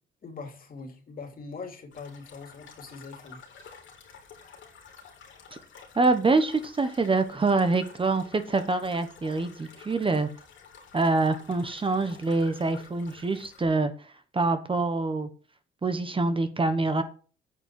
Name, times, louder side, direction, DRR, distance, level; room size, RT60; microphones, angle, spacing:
voice 1, 0.2-3.4, left 4 dB, 45° left, 4 dB, 2.7 m, -42 dB
sound 1, 1.9-13.6, left 6 dB, 75° left, 3.3 m, -50 dB
voice 2, 6.0-10.3 10.9-13.9 14.3-15.3 15.8-17.0, right 3 dB, 25° right, 9 dB, 1.2 m, -25 dB
8.9 x 5.0 x 7.6 m, 0.39 s
cardioid pair, 90°, 20 cm